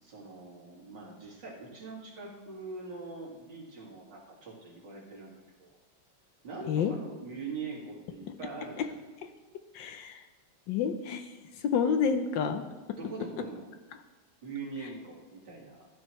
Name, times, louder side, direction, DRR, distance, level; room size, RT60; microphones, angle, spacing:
voice 1, 0.0-5.7 6.4-9.0 13.0-13.7 14.4-15.9, right 4 dB, 65° right, -4 dB, 2.8 m, -43 dB
voice 2, 9.7-10.2 10.7-11.3 11.6-12.7, left 6 dB, 75° left, 8 dB, 1.3 m, -28 dB
14.5 x 10.0 x 3.1 m, 1.2 s
omnidirectional pair, 2.1 m